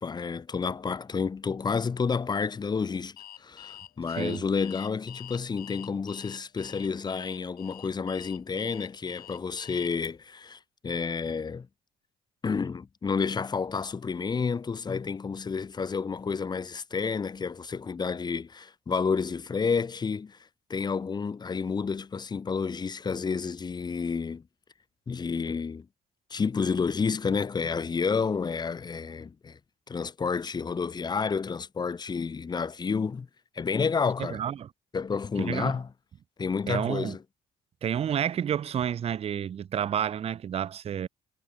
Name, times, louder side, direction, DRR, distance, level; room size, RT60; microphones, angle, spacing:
voice 1, 0.0-11.7 12.4-20.4 20.7-24.4 25.1-25.9 26.3-29.6 29.9-33.3 33.6-34.4 34.9-35.9 36.4-37.2, left 5 dB, 25° left, 0.5 m, -30 dB
Alarm, 3.2-10.1, left 12 dB, 60° left, 0.7 m, -46 dB
voice 2, 4.2-4.5 34.2-34.7 35.4-35.7 36.7-37.2 37.8-41.1, right 9 dB, 35° right, 0.4 m, -30 dB
supercardioid pair, 65°, 17 cm